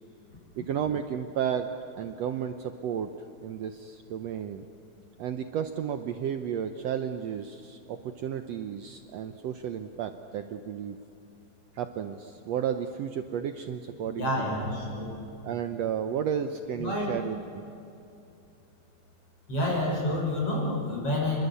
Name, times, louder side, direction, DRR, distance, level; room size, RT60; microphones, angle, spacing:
voice 1, 0.6-1.7 2.0-3.1 3.4-4.6 5.2-11.0 11.8-14.7 15.4-17.6, right 8 dB, 70° right, 8 dB, 1.8 m, -33 dB
voice 2, 14.0-15.1 16.8-17.1 19.5-21.5, left 1 dB, 45° left, -1 dB, 7.1 m, -29 dB
28.0 x 22.0 x 8.4 m, 2.7 s
omnidirectional pair, 3.6 m